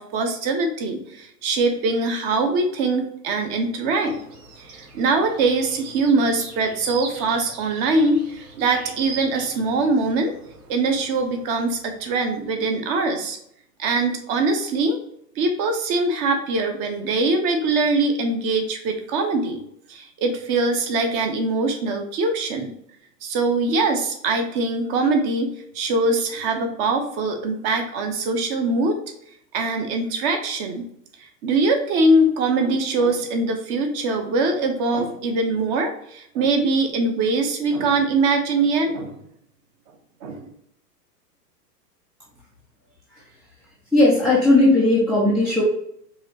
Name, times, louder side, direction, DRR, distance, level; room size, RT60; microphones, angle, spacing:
voice 1, 0.0-4.2 4.6-10.3 10.7-13.4 13.8-15.0 15.4-19.6 19.9-22.7 23.2-29.0 29.5-30.9 31.4-39.2 40.2-40.5, right 3 dB, 35° right, 4 dB, 0.9 m, -22 dB
sound 1, 4.0-12.4, right 4 dB, 65° right, 1.6 m, -41 dB
voice 2, 43.9-45.6, left 2 dB, ahead, -7 dB, 0.4 m, -17 dB
4.9 x 3.1 x 2.8 m, 0.72 s
figure-of-eight pair, 100°, 49 cm